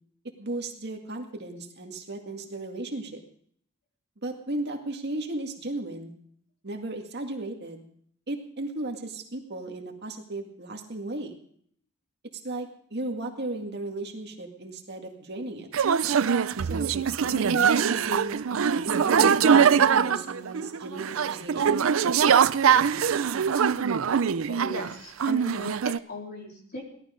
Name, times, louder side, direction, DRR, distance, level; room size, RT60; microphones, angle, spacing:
voice 1, 0.4-3.2 4.2-6.1 6.6-7.9 8.3-11.4 12.4-15.7 16.7-16.9 17.3-21.8, right 2 dB, 50° right, 2 dB, 2.1 m, -35 dB
sound 1, 15.7-24.9 25.2-26.0, right 7 dB, 70° right, 0.5 m, -23 dB
voice 2, 24.5-26.9, left 1 dB, 45° left, -1 dB, 4.1 m, -38 dB
17.5 x 12.5 x 5.2 m, 0.63 s
head